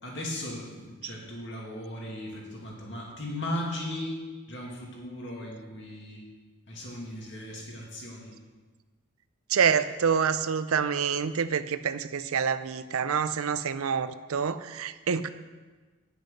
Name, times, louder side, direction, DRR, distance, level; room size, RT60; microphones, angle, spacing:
voice 1, 0.0-4.2 4.5-6.2 6.7-8.4, left 1 dB, 55° left, -3 dB, 2.4 m, -37 dB
voice 2, 9.5-15.3, right 6 dB, 90° right, 13 dB, 0.5 m, -27 dB
10.0 x 6.6 x 6.5 m, 1.4 s
head